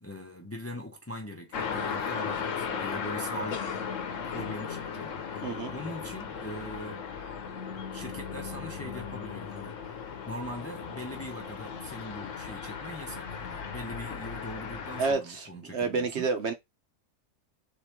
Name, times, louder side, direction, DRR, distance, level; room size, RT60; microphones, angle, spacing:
voice 1, 0.0-3.6 4.2-5.5 5.7-7.0 7.9-9.8 10.3-16.3, equal, 15° left, 0.7 m, -41 dB
sound 1, 1.5-15.1, left 6 dB, 75° left, 1.2 m, -36 dB
voice 2, 5.4-5.7 15.0-16.5, right 4 dB, 60° right, 1.1 m, -29 dB
3.7 x 3.1 x 4.4 m
omnidirectional pair, 1.3 m